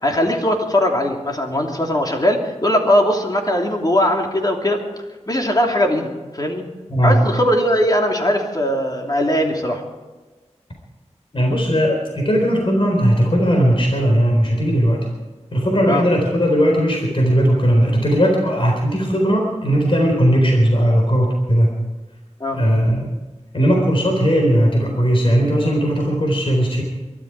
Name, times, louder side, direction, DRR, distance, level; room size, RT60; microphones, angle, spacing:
voice 1, 0.0-4.8 5.3-6.6 7.0-9.8 15.9-16.0 22.4-22.6, left 1 dB, 35° left, 1 dB, 3.0 m, -19 dB
voice 2, 6.9-7.2 11.3-15.1 15.5-21.7 22.5-23.1 23.5-26.8, equal, 50° left, 0 dB, 4.1 m, -17 dB
23.0 x 12.5 x 4.8 m, 1.3 s
wide cardioid pair, 75°, 12 cm